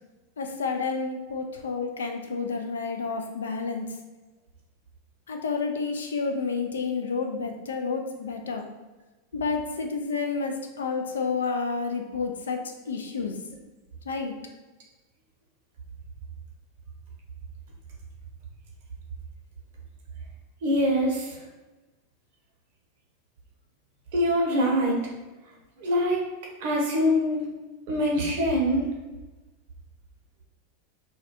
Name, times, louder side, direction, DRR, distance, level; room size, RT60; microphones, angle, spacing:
voice 1, 0.4-3.9 5.3-8.7 9.3-13.4 14.1-14.3, left 4 dB, 80° left, 4 dB, 0.3 m, -30 dB
voice 2, 20.6-21.4 24.1-25.0 25.8-26.3 26.6-27.5 27.9-28.9, equal, 60° right, -1 dB, 0.7 m, -24 dB
2.2 x 2.2 x 2.8 m, 1.2 s
hypercardioid pair, 90°, 0 cm